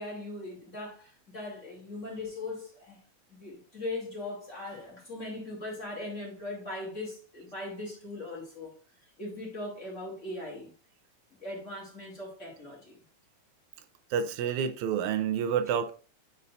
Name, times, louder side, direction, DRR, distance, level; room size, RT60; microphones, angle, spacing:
voice 1, 0.0-3.0 3.3-8.7 9.0-10.7 11.4-13.0, left 2 dB, 25° left, 2.5 m, -39 dB
voice 2, 14.1-15.9, right 7 dB, 85° right, 2.1 m, -28 dB
8.4 x 5.5 x 2.5 m
omnidirectional pair, 3.3 m